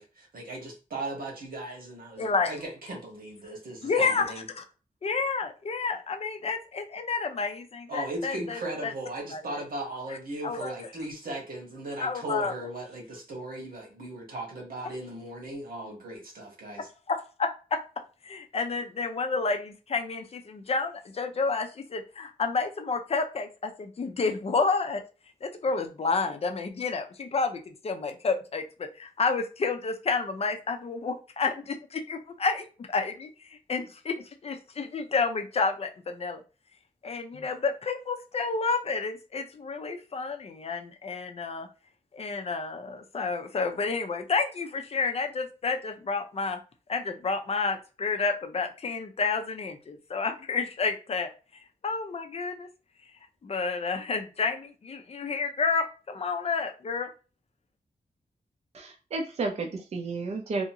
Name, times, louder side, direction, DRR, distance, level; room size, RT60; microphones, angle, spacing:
voice 1, 0.0-4.5 7.9-16.9, right 1 dB, 80° right, 1.2 m, -37 dB
voice 2, 2.2-2.5 3.8-4.6 5.0-8.9 9.3-9.4 10.1-10.2 10.4-10.9 12.0-12.5 17.1-17.8 18.2-25.0 25.4-36.4 37.0-41.7 42.1-46.6 46.9-51.3 51.8-52.7 53.4-57.1, left 4 dB, 45° left, 0.4 m, -30 dB
voice 3, 58.7-60.7, right 3 dB, 45° right, 0.5 m, -32 dB
2.8 x 2.6 x 2.7 m
wide cardioid pair, 165°, 15 cm